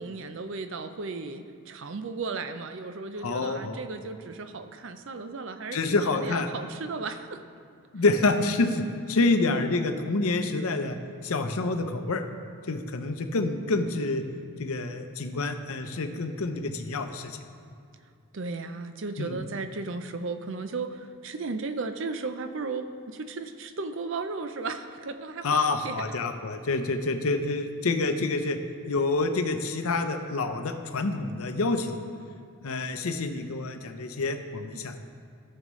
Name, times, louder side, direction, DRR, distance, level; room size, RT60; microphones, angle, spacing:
voice 1, 0.0-7.4 18.3-26.0 34.7-34.8, right 3 dB, 60° right, 9 dB, 0.5 m, -35 dB
voice 2, 3.2-3.8 5.7-6.5 7.9-8.8 9.1-11.0 11.2-12.2 12.7-14.2 14.6-17.4 19.2-19.4 25.4-28.6 28.9-32.0 32.6-35.0, left 3 dB, 85° left, 7 dB, 0.7 m, -27 dB
14.5 x 6.5 x 3.1 m, 2.4 s
head